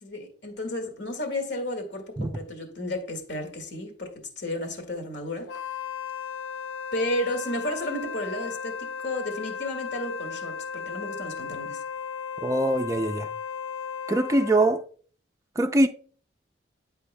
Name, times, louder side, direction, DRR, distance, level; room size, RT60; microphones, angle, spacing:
voice 1, 0.0-5.5 6.9-11.8, left 1 dB, 70° left, 1.8 m, -32 dB
Wind instrument woodwind instrument, 5.5-14.8, left 6 dB, 85° left, 0.7 m, -35 dB
voice 2, 12.4-13.3 14.1-14.8 15.6-15.9, right 2 dB, 15° right, 0.4 m, -23 dB
10.0 x 5.6 x 2.2 m
head